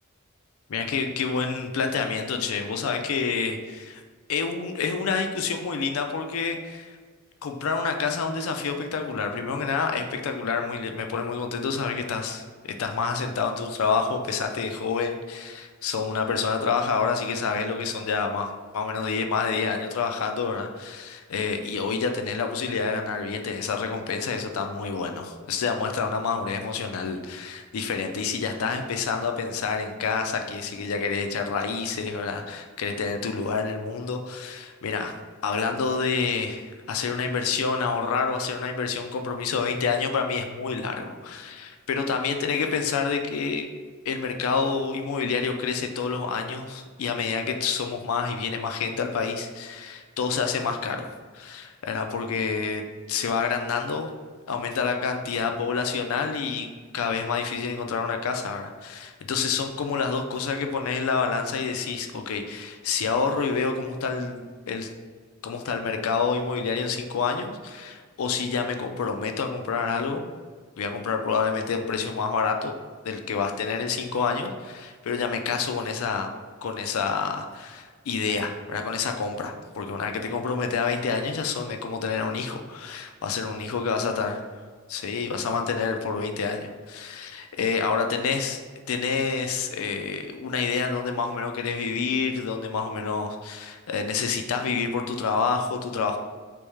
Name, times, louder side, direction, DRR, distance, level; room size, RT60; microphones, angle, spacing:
voice 1, 0.7-4.0 4.3-7.0 7.4-35.1 35.4-43.7 44.1-51.1 51.3-54.1 54.5-56.7 56.9-64.9 65.4-70.2 70.8-72.7 73.0-76.3 76.6-84.3 84.9-88.6 88.9-96.2, left 5 dB, 80° left, 5 dB, 0.4 m, -28 dB
3.4 x 3.1 x 3.2 m, 1.5 s
head